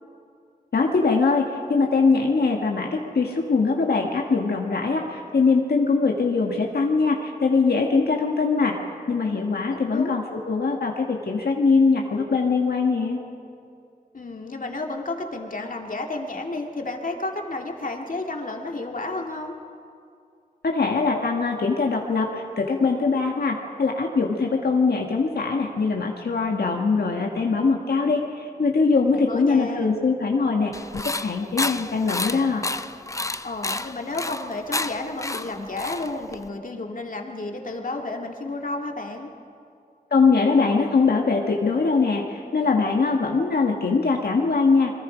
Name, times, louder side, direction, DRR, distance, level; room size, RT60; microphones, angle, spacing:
voice 1, 0.7-8.8 9.1-13.2 20.6-32.7 40.1-44.9, left 4 dB, 90° left, 1 dB, 1.6 m, -22 dB
voice 2, 9.7-10.2 14.1-19.6 29.1-29.9 33.4-39.3, left 2 dB, 60° left, 2 dB, 2.2 m, -32 dB
sound 1, 30.7-36.5, left 2 dB, 20° left, 0.6 m, -30 dB
27.0 x 22.5 x 5.1 m, 2.5 s
wide cardioid pair, 70°, 16 cm